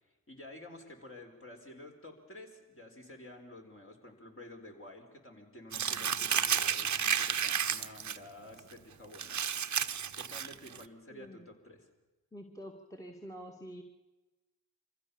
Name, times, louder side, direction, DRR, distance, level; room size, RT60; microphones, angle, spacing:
voice 1, 0.3-9.4 10.1-11.9, left 1 dB, 35° left, 2 dB, 4.5 m, -51 dB
Crumpling crinkling, 5.7-8.2 8.6-8.7 9.1-10.8, right 8 dB, 50° right, 1.0 m, -32 dB
voice 2, 11.1-11.5 12.3-13.8, equal, 10° left, 1 dB, 2.1 m, -47 dB
24.5 x 15.0 x 7.1 m, 1.1 s
supercardioid pair, 55°, 38 cm